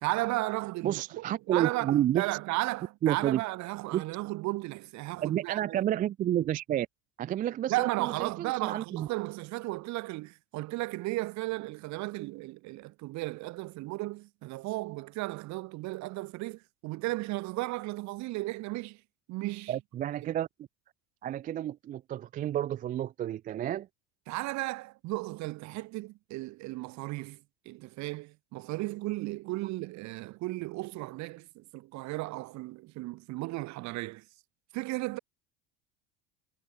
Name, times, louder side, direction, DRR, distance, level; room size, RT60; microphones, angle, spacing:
voice 1, 0.0-5.8 7.7-19.0 19.3-19.7 24.3-27.4 27.7-34.2 34.7-35.2, right 20 dB, 55° right, 2.1 m, -35 dB
voice 2, 0.8-2.4 3.0-3.4 3.9-4.0 5.2-6.9 7.2-9.1 19.7-20.7 21.2-23.9, right 12 dB, 25° right, 0.4 m, -30 dB
supercardioid pair, 115°, 34 cm